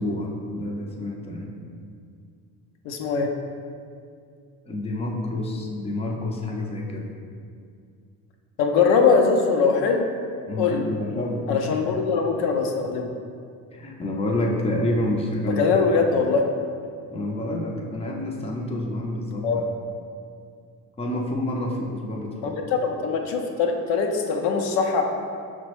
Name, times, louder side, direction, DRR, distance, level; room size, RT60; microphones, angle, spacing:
voice 1, 0.0-1.5 4.7-7.0 10.5-11.8 13.7-15.9 17.1-19.6 21.0-22.6, left 1 dB, 15° left, -1 dB, 0.5 m, -28 dB
voice 2, 2.8-3.3 8.6-10.1 10.6-10.8 11.5-13.1 15.4-16.5 19.4-19.6 22.4-22.5 22.8-25.0, left 5 dB, 70° left, 2 dB, 0.6 m, -22 dB
5.8 x 2.1 x 3.0 m, 2.2 s
hypercardioid pair, 60°, 45 cm